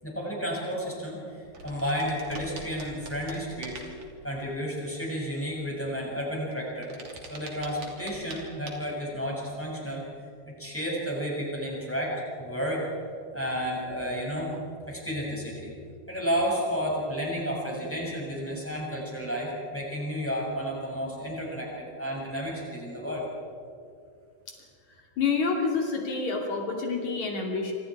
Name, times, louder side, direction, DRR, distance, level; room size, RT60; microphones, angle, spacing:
voice 1, 0.0-3.8 4.2-7.0 7.3-10.0 10.5-12.9 13.3-14.5 14.9-15.7 16.1-23.2, equal, 5° left, -3 dB, 6.7 m, -32 dB
sound 1, 1.1-1.2 1.4-4.3 6.4-8.4 8.7-8.8, right 2 dB, 50° right, 4.0 m, -43 dB
voice 2, 25.2-27.7, left 4 dB, 70° left, 0 dB, 4.1 m, -28 dB
27.0 x 26.5 x 4.8 m, 2.4 s
omnidirectional pair, 3.4 m